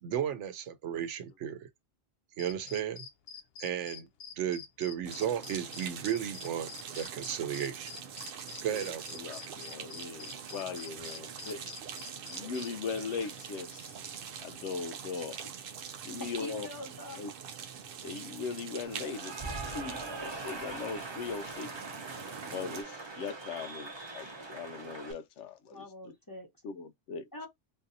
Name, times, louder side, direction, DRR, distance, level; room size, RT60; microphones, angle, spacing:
voice 1, 0.0-1.7 2.4-3.1 3.6-4.1 4.4-6.7 7.0-7.9 8.6-9.2, right 9 dB, 90° right, 0.9 m, -34 dB
sound 1, 2.4-12.7, left 8 dB, 65° left, 0.8 m, -46 dB
sound 2, 5.0-22.8, right 7 dB, 60° right, 0.7 m, -44 dB
voice 2, 8.7-11.7 12.3-14.0 14.4-15.4 16.0-16.7 17.2-17.3 18.0-21.7 22.5-26.1 26.6-27.3, left 5 dB, 85° left, 0.9 m, -39 dB
voice 3, 16.4-17.2 25.7-26.5 27.3-27.5, left 2 dB, 20° left, 0.9 m, -44 dB
Cheering / Applause, 18.8-25.1, right 3 dB, 25° right, 0.7 m, -42 dB
3.8 x 2.6 x 2.6 m
omnidirectional pair, 1.2 m